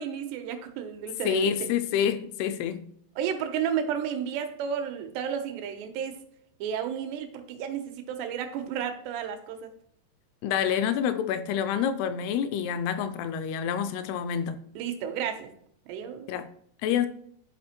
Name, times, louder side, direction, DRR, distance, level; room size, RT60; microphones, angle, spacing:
voice 1, 0.0-1.7 3.2-6.2 6.6-9.7 14.8-15.5 15.9-16.3, right 8 dB, 90° right, 3.1 m, -32 dB
voice 2, 1.3-2.8 10.4-14.6 16.3-16.5 16.8-17.1, left 9 dB, 80° left, 2.5 m, -27 dB
11.5 x 5.0 x 4.3 m
omnidirectional pair, 4.8 m